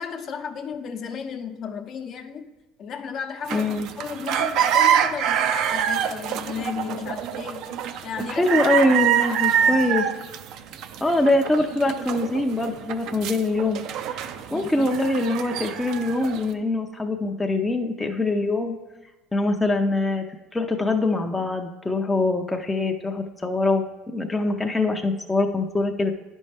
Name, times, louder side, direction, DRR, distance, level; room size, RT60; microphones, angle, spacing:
voice 1, 0.0-2.5 2.8-7.8 8.0-8.5 9.6-9.9 14.5-14.9, left 6 dB, 50° left, 5 dB, 0.7 m, -34 dB
voice 2, 3.5-3.9 8.3-10.1 11.0-13.8 14.1-18.8 19.3-20.2 20.5-26.1, left 2 dB, 10° left, 3 dB, 0.5 m, -23 dB
sound 1, 3.5-16.5, right 9 dB, 65° right, 0.4 m, -25 dB
10.0 x 5.3 x 3.3 m, 1.1 s
supercardioid pair, 110°, 0 cm